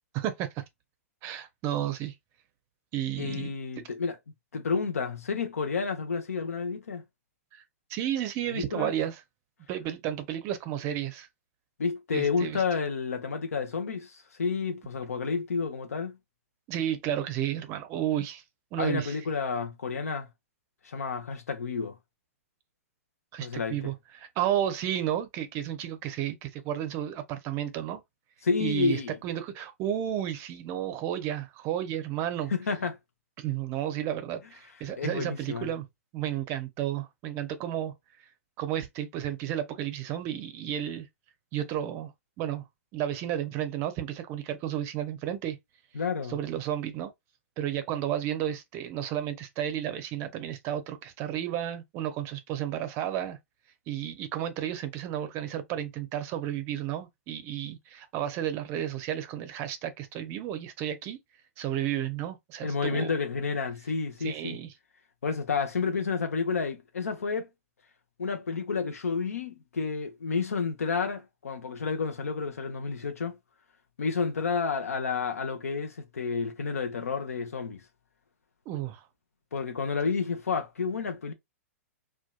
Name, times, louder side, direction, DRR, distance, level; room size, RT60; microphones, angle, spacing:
voice 1, 0.1-0.6 1.2-2.1 2.9-3.5 7.5-7.6 7.9-9.2 9.7-11.3 12.1-12.6 16.7-18.4 18.7-19.2 23.3-28.0 28.6-32.5 33.4-35.9 36.1-37.9 38.6-41.1 41.5-42.1 42.4-42.6 42.9-45.6 46.3-47.1 47.6-53.4 53.9-61.2 61.6-63.1 64.2-64.7 78.7-79.0, right 11 dB, 35° right, 0.5 m, -32 dB
voice 2, 3.2-4.2 4.5-7.0 8.5-8.9 11.8-16.2 18.8-20.3 20.8-22.0 23.4-23.9 28.4-29.2 32.5-33.0 35.0-35.7 45.9-46.4 62.6-64.6 65.2-67.5 68.2-73.4 74.0-77.8 79.5-81.3, left 5 dB, 75° left, 0.6 m, -30 dB
2.7 x 2.2 x 2.2 m
figure-of-eight pair, 115°, 8 cm